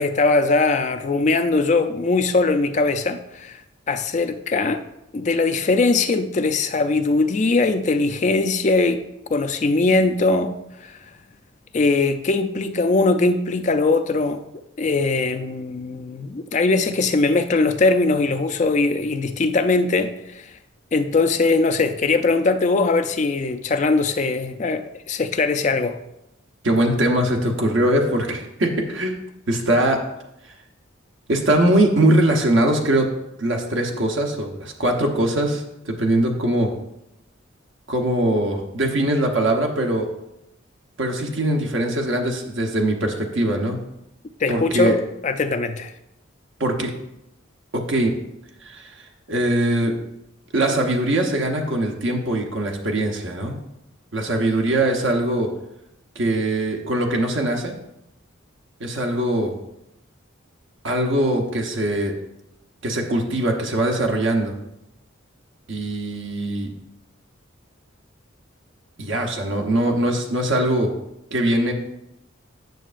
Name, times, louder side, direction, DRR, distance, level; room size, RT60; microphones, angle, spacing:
voice 1, 0.0-4.8 5.1-9.0 9.3-11.0 11.7-14.5 14.8-20.5 20.9-26.0 44.4-45.9, left 3 dB, 35° left, 8 dB, 0.4 m, -21 dB
voice 2, 26.6-30.0 31.3-33.1 33.4-36.7 37.9-40.1 41.0-43.8 44.5-44.9 46.6-46.9 47.7-48.1 48.6-49.0 49.3-49.9 50.5-53.5 54.1-55.5 56.1-57.7 58.8-59.5 60.8-62.1 62.8-64.5 65.7-66.7 69.0-70.9 71.3-71.7, right 1 dB, 70° right, 2 dB, 0.9 m, -21 dB
9.2 x 6.0 x 2.5 m, 0.86 s
head